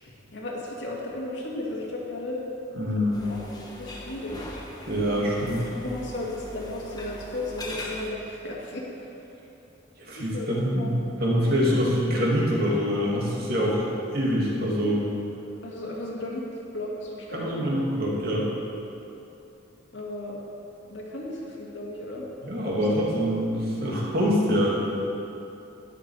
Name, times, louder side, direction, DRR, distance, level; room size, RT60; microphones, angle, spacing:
voice 1, 0.0-2.4 3.2-3.4 3.8-4.6 5.8-9.1 10.2-10.9 15.6-16.4 16.7-17.6 19.9-20.4 20.9-22.3, left 1 dB, 70° left, -4 dB, 2.1 m, -35 dB
voice 2, 2.7-3.3 4.9-5.6 10.0-13.8 14.1-15.0 17.3-18.5 22.4-24.8, equal, 50° right, -5 dB, 2.5 m, -25 dB
sound 1, 3.1-8.1, left 1 dB, 20° left, 1.1 m, -40 dB
12.0 x 10.0 x 4.8 m, 2.8 s
head